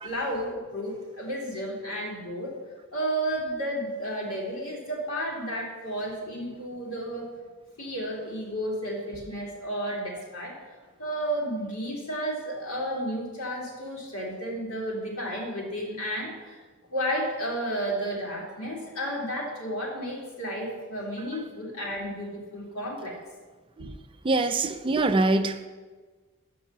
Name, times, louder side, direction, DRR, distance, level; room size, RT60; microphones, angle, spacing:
voice 1, 0.0-2.5 2.9-7.3 7.8-10.6 11.0-16.6 16.9-23.2, equal, 90° left, -3 dB, 2.4 m, -32 dB
voice 2, 24.2-25.7, right 2 dB, 25° right, 9 dB, 0.4 m, -25 dB
6.9 x 5.4 x 6.8 m, 1.3 s
head